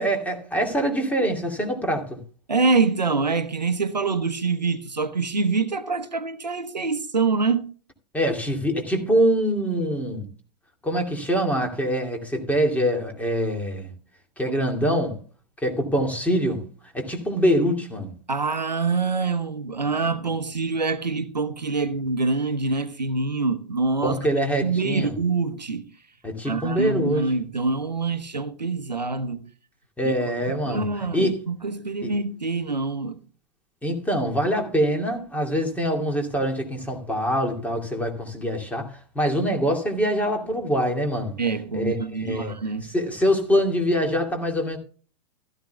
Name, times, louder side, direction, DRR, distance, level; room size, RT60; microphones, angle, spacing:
voice 1, 0.0-2.2 8.1-10.3 10.8-13.9 14.4-15.2 15.6-18.1 24.0-25.1 26.2-27.3 30.0-31.4 32.0-32.1 33.8-41.3 41.7-42.6 42.9-44.8, equal, 5° left, 2.4 m, -24 dB
voice 2, 2.5-7.7 14.5-14.6 14.8-15.0 18.3-24.2 24.6-25.9 26.5-29.5 30.0-30.1 30.7-33.2 41.4-42.9, right 4 dB, 85° right, 1.0 m, -25 dB
15.5 x 13.5 x 2.3 m
figure-of-eight pair, 100°, 21 cm